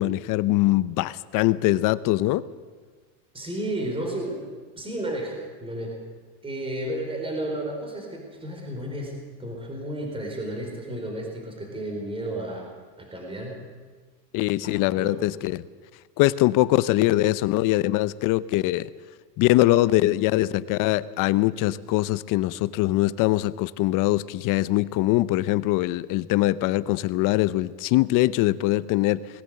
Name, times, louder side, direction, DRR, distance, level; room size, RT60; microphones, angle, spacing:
voice 1, 0.0-2.5 14.3-15.6 16.2-18.9 19.4-29.3, left 17 dB, 40° left, 16 dB, 0.7 m, -22 dB
voice 2, 3.3-4.5 4.7-6.0 6.4-12.7 13.0-13.6 14.6-15.2, right 1 dB, 10° right, 1 dB, 4.6 m, -32 dB
20.0 x 18.5 x 7.8 m, 1.5 s
supercardioid pair, 135°, 48 cm